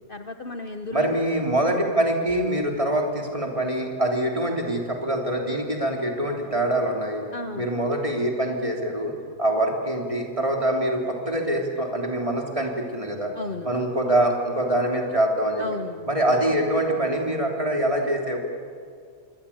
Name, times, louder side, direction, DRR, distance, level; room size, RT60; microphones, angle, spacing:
voice 1, 0.1-1.4 7.3-7.7 13.3-13.7 15.6-16.1, left 3 dB, 45° left, 7 dB, 1.1 m, -34 dB
voice 2, 0.9-7.2 7.6-13.3 13.6-15.6 16.1-18.4, right 1 dB, 25° right, 1 dB, 3.4 m, -24 dB
26.5 x 24.0 x 8.7 m, 2.1 s
omnidirectional pair, 1.5 m